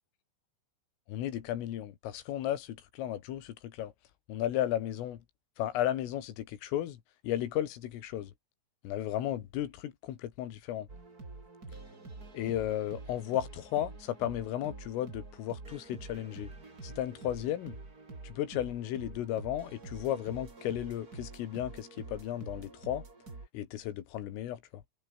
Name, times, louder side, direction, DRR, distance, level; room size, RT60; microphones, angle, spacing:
voice 1, 1.1-3.9 4.3-5.2 5.6-8.3 8.8-10.9 12.3-16.5 16.8-17.8 18.2-23.0 23.5-24.8, left 12 dB, 85° left, 4.8 m, -34 dB
sound 1, 10.9-23.5, right 3 dB, 20° right, 3.8 m, -47 dB
omnidirectional pair, 5.7 m